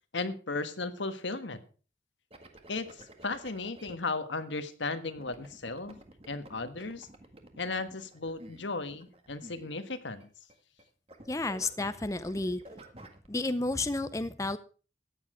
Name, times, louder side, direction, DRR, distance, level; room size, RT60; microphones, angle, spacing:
voice 1, 0.1-1.6 2.7-6.0 6.3-7.1 7.6-10.3, left 3 dB, 85° left, 10 dB, 1.5 m, -35 dB
sound 1, 2.3-3.9 5.2-10.2 10.5-10.8 11.1-13.3, right 1 dB, 30° right, 1.7 m, -51 dB
voice 2, 11.3-12.6 13.3-14.6, left 2 dB, 15° left, 12 dB, 0.6 m, -31 dB
14.5 x 9.9 x 5.0 m, 0.38 s
head